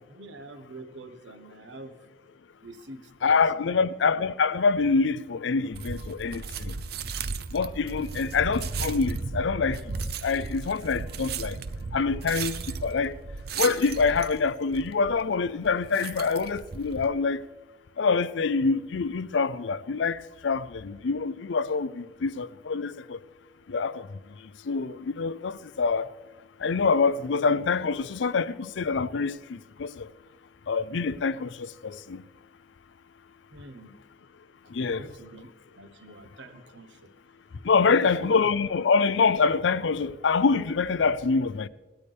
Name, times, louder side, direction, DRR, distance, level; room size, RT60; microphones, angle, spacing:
voice 1, 0.0-1.9 2.6-4.0 33.5-33.9 34.9-35.5 35.8-37.1 37.8-38.4, right 2 dB, 80° right, 1.3 m, -45 dB
voice 2, 3.2-6.7 7.5-9.8 10.2-11.6 11.9-13.1 13.6-17.4 18.0-20.2 20.4-23.2 23.7-24.1 24.7-26.1 26.6-30.1 30.7-32.2 34.7-35.1 37.6-41.7, left 4 dB, 75° left, 0.5 m, -25 dB
sound 1, 5.7-17.1, right 5 dB, 55° right, 0.6 m, -35 dB
18.5 x 12.5 x 3.4 m
head